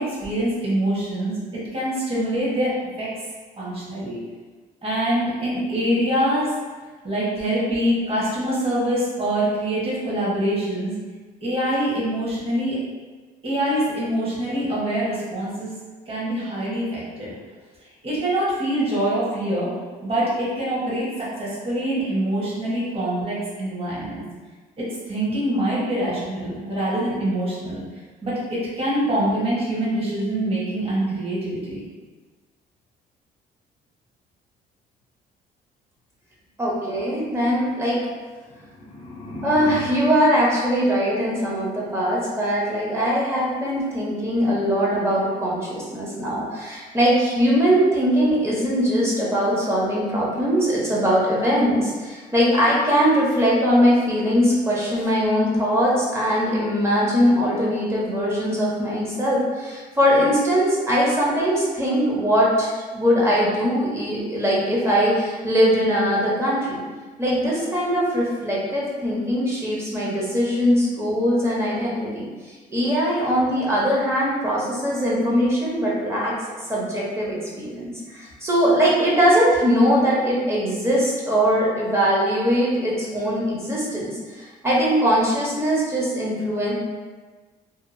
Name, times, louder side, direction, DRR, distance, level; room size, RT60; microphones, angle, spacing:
voice 1, 0.0-1.4 1.7-2.7 3.0-3.1 3.6-4.2 4.8-6.5 7.0-11.0 11.4-12.8 13.4-15.8 16.1-17.3 18.0-19.7 20.0-24.2 24.8-27.8 28.2-31.8, right 1 dB, 35° right, -8 dB, 1.2 m, -24 dB
voice 2, 36.6-38.0 39.4-66.8 67.2-72.3 72.7-76.3 76.7-86.7, equal, 15° right, -6 dB, 0.8 m, -21 dB
sound 1, 38.3-41.5, left 2 dB, 30° left, 0.7 m, -37 dB
2.8 x 2.3 x 2.5 m, 1.4 s
cardioid pair, 110°, 17 cm